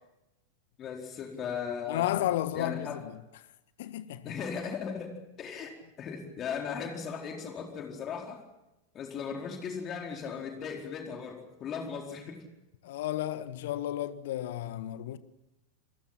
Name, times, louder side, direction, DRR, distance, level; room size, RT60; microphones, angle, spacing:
voice 1, 0.8-3.0 4.2-8.4 8.9-12.4, left 6 dB, 30° left, 4.5 m, -37 dB
voice 2, 1.9-3.1 3.8-4.4 12.8-15.2, left 13 dB, 55° left, 1.5 m, -32 dB
29.0 x 22.0 x 5.9 m
figure-of-eight pair, 90°, 0 cm